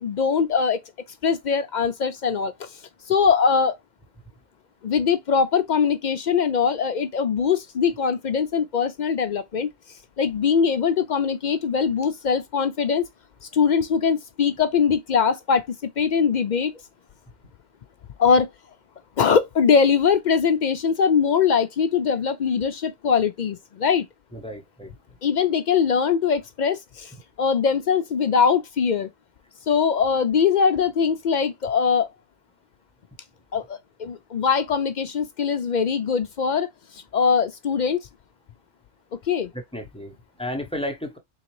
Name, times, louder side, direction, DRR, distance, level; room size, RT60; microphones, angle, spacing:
voice 1, 0.0-0.8 1.2-2.7 3.1-3.8 4.8-9.7 10.2-13.0 13.5-15.6 16.0-16.7 18.2-18.5 19.2-24.1 25.2-27.1 27.4-29.1 29.7-32.1 33.5-36.7 36.9-38.0 39.3-39.5, left 6 dB, 55° left, 0.5 m, -21 dB
voice 2, 24.3-24.9 39.5-41.2, equal, 5° left, 0.7 m, -33 dB
3.9 x 3.2 x 3.0 m
omnidirectional pair, 1.1 m